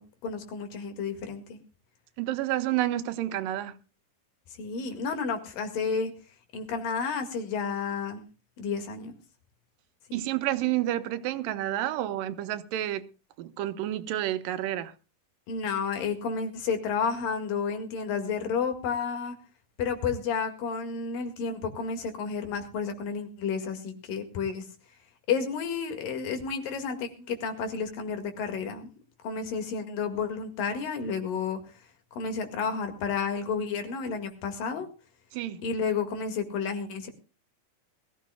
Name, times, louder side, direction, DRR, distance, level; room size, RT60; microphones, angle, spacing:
voice 1, 0.0-1.6 4.6-6.1 6.5-8.2 8.6-9.1 10.1-10.2 15.5-19.4 19.8-24.7 25.3-28.9 29.2-31.6 32.1-34.9 35.6-37.1, left 5 dB, 85° left, 3.7 m, -31 dB
voice 2, 2.2-3.8 10.1-13.0 13.4-14.9 35.3-35.6, right 13 dB, 90° right, 2.5 m, -29 dB
22.0 x 15.0 x 2.3 m
omnidirectional pair, 3.8 m